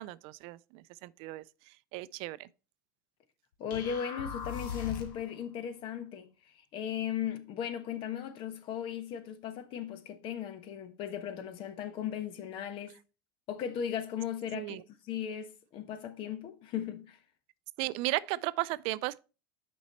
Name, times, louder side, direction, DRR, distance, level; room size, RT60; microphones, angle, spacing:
voice 1, 0.0-2.5 14.5-14.8 17.8-19.2, right 19 dB, 60° right, 0.4 m, -35 dB
voice 2, 3.6-12.9 13.5-17.2, left 9 dB, 55° left, 1.1 m, -37 dB
sound 1, 3.7-5.3, left 6 dB, 75° left, 1.9 m, -39 dB
6.3 x 5.2 x 4.1 m
supercardioid pair, 105°, 11 cm